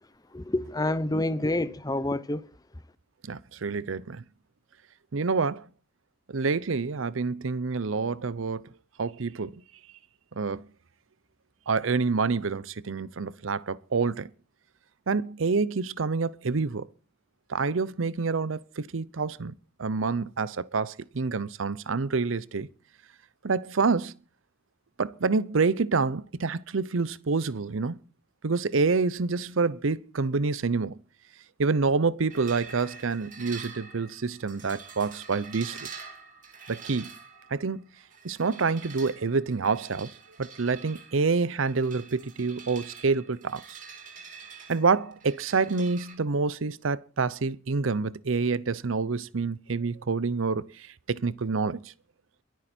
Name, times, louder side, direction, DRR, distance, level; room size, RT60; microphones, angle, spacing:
voice 1, 0.3-2.5, left 1 dB, 20° left, 0.8 m, -28 dB
voice 2, 3.2-4.2 5.1-5.7 6.3-8.7 9.0-9.6 10.4-10.6 11.7-14.3 15.1-16.9 17.5-19.5 19.8-22.7 23.4-24.1 25.0-28.0 28.4-31.0 31.6-35.9 36.7-37.1 37.5-37.8 38.2-40.1 40.4-43.8 44.7-51.9, right 4 dB, 75° right, 0.7 m, -27 dB
sound 1, 32.3-46.1, right 5 dB, 40° right, 3.1 m, -46 dB
22.5 x 9.4 x 4.4 m
head